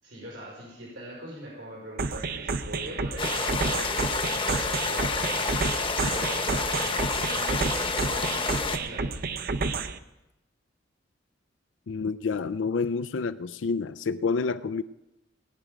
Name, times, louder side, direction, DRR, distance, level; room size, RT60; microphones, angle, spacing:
voice 1, 0.0-5.8 6.1-9.4, right 1 dB, 85° right, -5 dB, 5.2 m, -42 dB
sound 1, 2.0-10.0, right 4 dB, 55° right, 0.7 m, -30 dB
sound 2, 3.2-8.8, left 4 dB, 30° left, 0.9 m, -29 dB
voice 2, 11.9-14.8, left 4 dB, 75° left, 14 dB, 0.5 m, -28 dB
19.0 x 9.3 x 5.2 m, 0.95 s
head